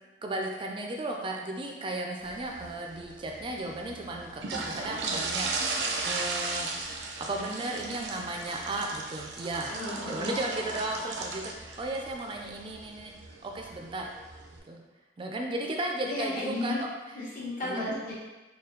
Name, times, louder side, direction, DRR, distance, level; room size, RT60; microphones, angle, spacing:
voice 1, 0.2-5.5 6.0-6.7 7.2-9.7 10.0-13.1 13.4-14.1 14.7-14.8 15.2-16.9 17.6-17.9, right 2 dB, 30° right, 1 dB, 0.4 m, -35 dB
sound 1, 2.2-14.6, right 3 dB, 80° right, 0.6 m, -36 dB
voice 2, 9.7-10.3 16.0-16.8 17.1-18.1, left 2 dB, 50° left, -8 dB, 1.2 m, -34 dB
4.1 x 2.2 x 3.8 m, 1.1 s
head